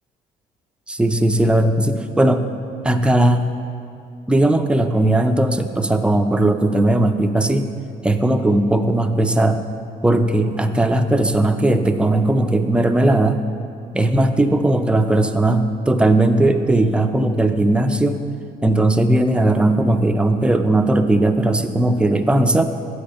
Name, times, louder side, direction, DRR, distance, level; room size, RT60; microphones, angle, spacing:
voice 1, 0.9-2.4 2.8-3.5 4.3-7.7 8.0-9.6 10.0-13.4 13.9-18.2 18.6-22.6, right 1 dB, 5° right, 7 dB, 0.4 m, -17 dB
8.8 x 4.8 x 6.4 m, 2.5 s
cardioid pair, 110°, 17 cm